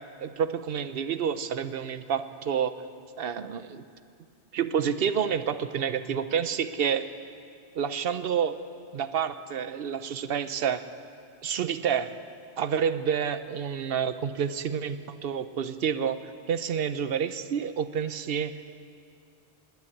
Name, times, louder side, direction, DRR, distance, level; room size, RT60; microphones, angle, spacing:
voice 1, 0.2-2.8 3.2-3.8 4.5-7.1 7.7-8.6 8.9-10.9 11.4-12.1 12.6-18.7, right 7 dB, 65° right, 12 dB, 0.8 m, -29 dB
19.5 x 8.3 x 8.5 m, 2.3 s
omnidirectional pair, 1.1 m